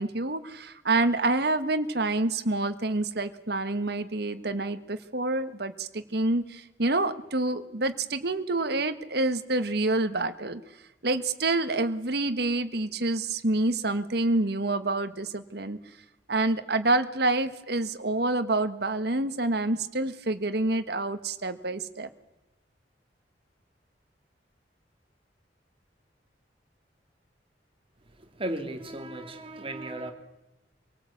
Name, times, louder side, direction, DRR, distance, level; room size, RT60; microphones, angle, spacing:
voice 1, 0.0-10.6 11.0-15.8 16.3-22.1, right 2 dB, 60° right, 10 dB, 1.5 m, -27 dB
voice 2, 28.2-30.1, right 1 dB, 30° right, 6 dB, 2.5 m, -35 dB
26.0 x 18.0 x 8.5 m, 0.98 s
head